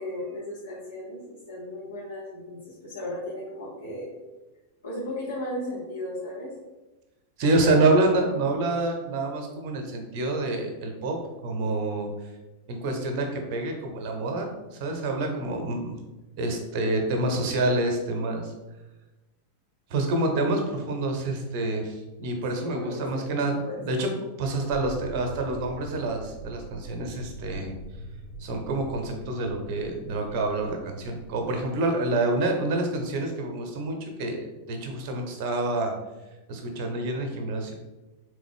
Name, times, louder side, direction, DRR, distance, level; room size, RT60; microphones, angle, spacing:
voice 1, 0.0-4.1 4.8-6.5 22.5-23.8, left 1 dB, 70° left, -7 dB, 0.9 m, -36 dB
voice 2, 7.4-12.1 12.7-16.0 16.4-18.5 19.9-24.1 24.4-27.7 28.4-35.9 36.5-37.7, right 2 dB, 45° right, 3 dB, 0.8 m, -27 dB
sound 1, 24.7-32.1, right 1 dB, 25° left, 1.0 m, -43 dB
3.8 x 3.3 x 3.4 m, 1.1 s
figure-of-eight pair, 90°, 0 cm